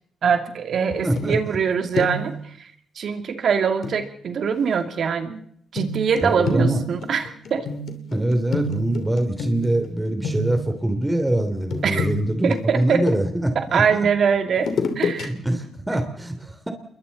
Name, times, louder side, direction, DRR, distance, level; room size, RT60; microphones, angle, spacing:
voice 1, 0.2-5.4 5.7-7.7 11.8-12.1 12.4-13.1 13.5-14.7 15.0-15.3, right 6 dB, 60° right, 7 dB, 2.4 m, -23 dB
voice 2, 1.0-1.4 6.2-6.8 8.1-13.8 15.2-16.7, right 1 dB, 10° right, 6 dB, 3.1 m, -23 dB
sound 1, 1.2-1.7 1.9-2.4 3.8-4.0 5.8-9.9 10.2-10.8 11.7-13.5 14.6-15.3 15.6-15.8, left 2 dB, 65° left, 3.0 m, -29 dB
28.0 x 22.5 x 4.2 m, 0.68 s
cardioid pair, 70°, 0 cm